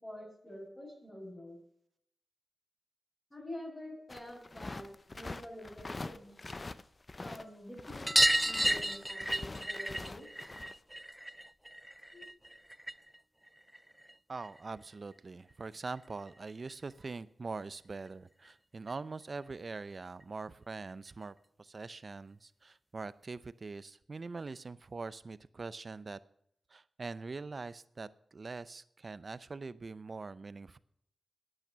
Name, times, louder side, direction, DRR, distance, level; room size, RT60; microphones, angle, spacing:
voice 1, 0.0-1.6 3.3-6.3 7.2-10.3 12.1-12.2, left 1 dB, 20° left, -4 dB, 5.1 m, -47 dB
sound 1, 4.1-7.4 7.7-10.7, left 2 dB, 40° left, 0.6 m, -44 dB
sound 2, 8.1-13.2 13.5-14.6 16.0-16.1 16.3-16.4 16.7-16.8 18.1-18.2 18.5-18.6 18.9-19.0 20.2-20.3 21.1-21.2, right 1 dB, 10° right, 0.3 m, -32 dB
voice 2, 14.3-26.2 26.7-30.8, right 4 dB, 50° right, 17 dB, 0.6 m, -43 dB
10.5 x 9.0 x 6.8 m, 0.71 s
cardioid pair, 45°, 0 cm